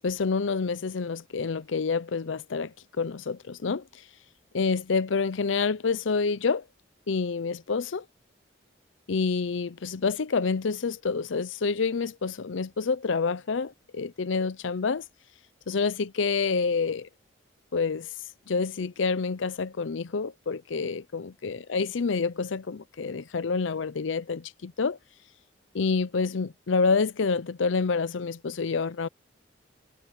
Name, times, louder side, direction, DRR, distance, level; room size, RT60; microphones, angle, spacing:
voice 1, 0.0-3.8 4.5-6.6 7.1-8.0 9.1-15.0 15.7-17.1 17.7-18.1 18.5-25.0 25.7-29.1, left 4 dB, 85° left, 0.6 m, -28 dB
head